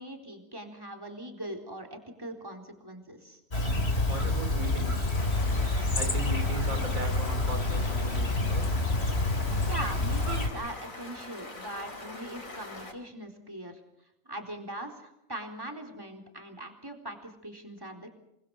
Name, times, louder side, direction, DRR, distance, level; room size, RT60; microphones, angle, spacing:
voice 1, 0.0-3.4 9.7-13.7 14.3-18.1, right 1 dB, 15° right, 3 dB, 4.0 m, -41 dB
Chirp tweet, 3.5-10.5, left 2 dB, 50° left, 3.7 m, -28 dB
voice 2, 4.1-5.2 5.9-8.7, right 2 dB, 80° right, 8 dB, 3.5 m, -38 dB
Stream, 5.2-12.9, left 2 dB, 70° left, 5.2 m, -43 dB
30.0 x 23.5 x 4.8 m, 0.85 s
omnidirectional pair, 1.4 m